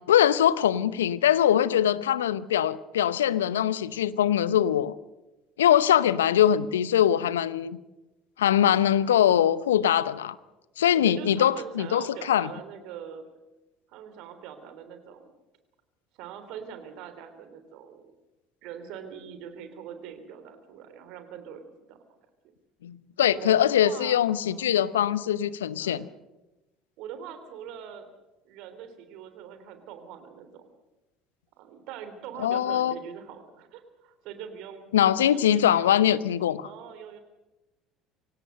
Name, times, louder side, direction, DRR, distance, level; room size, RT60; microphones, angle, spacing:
voice 1, 0.1-4.9 5.6-7.8 8.4-10.4 10.8-12.5 22.8-26.1 32.4-32.9 34.9-36.7, left 10 dB, 75° left, 0.8 m, -22 dB
voice 2, 10.9-13.2 13.9-15.3 16.2-18.1 18.6-22.0 23.3-24.8 25.8-26.1 27.0-28.1 28.4-30.7 31.6-34.8 35.3-36.0 36.6-37.2, right 8 dB, 60° right, 3.4 m, -42 dB
25.0 x 17.5 x 6.6 m
figure-of-eight pair, 65°, 0 cm